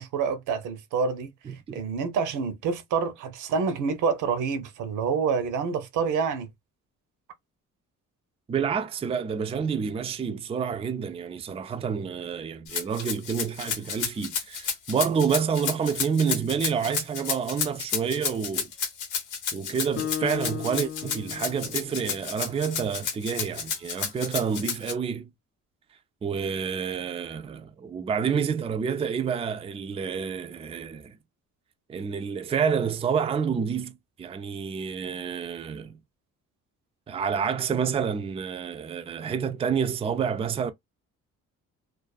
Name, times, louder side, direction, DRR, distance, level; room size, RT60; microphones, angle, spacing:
voice 1, 0.0-1.3 1.7-6.5, right 5 dB, 85° right, 0.7 m, -27 dB
voice 2, 1.5-1.8 8.5-18.7 19.5-25.3 26.2-31.2 31.9-36.0 37.1-40.7, right 6 dB, 20° right, 0.3 m, -28 dB
Rattle (instrument), 12.7-24.9, left 7 dB, 90° left, 0.9 m, -31 dB
Acoustic guitar, 20.0-22.7, left 10 dB, 50° left, 0.5 m, -36 dB
2.4 x 2.3 x 2.3 m
cardioid pair, 90°, 30 cm